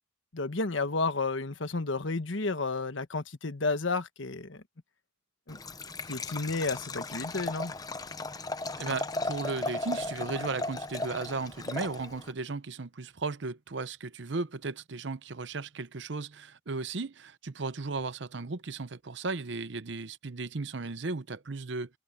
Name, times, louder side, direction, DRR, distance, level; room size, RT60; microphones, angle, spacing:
voice 1, 0.3-4.6 5.5-5.6 6.1-7.7, left 3 dB, 75° left, 1.3 m, -31 dB
Liquid, 5.5-12.3, left 2 dB, 20° left, 0.7 m, -36 dB
voice 2, 8.8-21.9, right 3 dB, 65° right, 0.7 m, -35 dB
open air
head